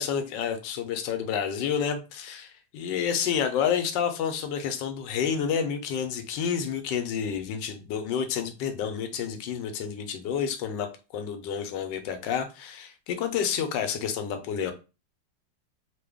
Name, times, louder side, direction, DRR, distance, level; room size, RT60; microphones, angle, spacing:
voice 1, 0.0-10.9 11.1-14.7, left 7 dB, 80° left, 1.2 m, -29 dB
3.2 x 2.2 x 3.4 m
omnidirectional pair, 2.0 m